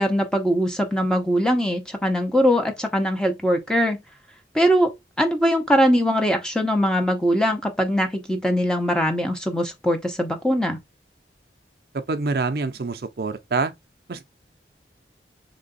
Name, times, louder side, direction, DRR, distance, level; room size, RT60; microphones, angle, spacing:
voice 1, 0.0-4.0 4.5-10.8, equal, 5° left, 0.8 m, -21 dB
voice 2, 12.1-13.7 14.1-14.2, right 3 dB, 60° right, 0.5 m, -26 dB
3.7 x 3.3 x 3.9 m
head